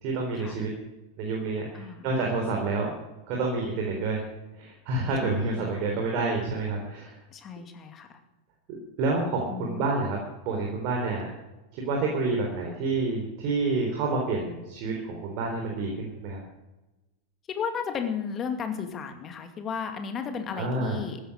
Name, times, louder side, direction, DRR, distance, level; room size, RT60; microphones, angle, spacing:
voice 1, 0.0-0.7 1.2-2.9 3.3-4.2 4.6-7.2 8.7-10.2 10.5-11.3 11.7-16.4 20.5-21.0, right 3 dB, 45° right, 0 dB, 3.9 m, -28 dB
voice 2, 1.7-2.1 5.2-5.7 7.3-8.1 9.5-9.9 17.5-21.2, left 6 dB, 25° left, 6 dB, 2.3 m, -34 dB
15.0 x 12.5 x 6.6 m, 1.0 s
figure-of-eight pair, 90°, 0 cm